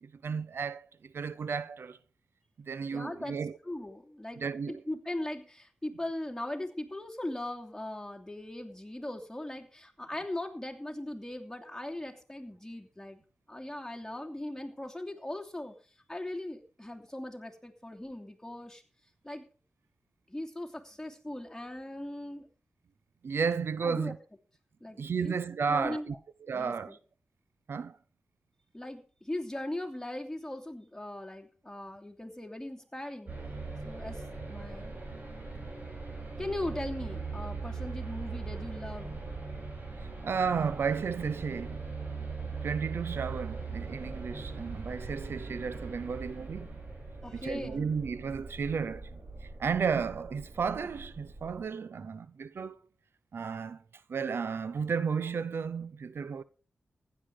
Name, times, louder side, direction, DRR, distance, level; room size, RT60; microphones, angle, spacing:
voice 1, 0.0-0.9 1.1-2.0 2.6-3.6 4.4-4.8 23.2-24.2 25.0-26.1 26.5-27.0 27.7-28.0 40.2-41.8 42.6-46.7 47.3-49.1 49.4-52.8 53.3-53.8 54.1-56.4, right 6 dB, 75° right, 0.7 m, -33 dB
voice 2, 2.9-13.2 13.5-15.7 16.1-18.8 19.2-19.5 20.3-22.5 23.8-24.1 24.8-25.4 25.7-26.2 26.5-27.0 28.7-33.3 33.8-34.2 34.5-35.0 36.4-39.2 47.2-47.9, left 1 dB, 10° left, 2.9 m, -39 dB
sound 1, 33.3-51.7, right 4 dB, 45° right, 5.4 m, -40 dB
15.5 x 10.5 x 4.9 m
wide cardioid pair, 75°, 4 cm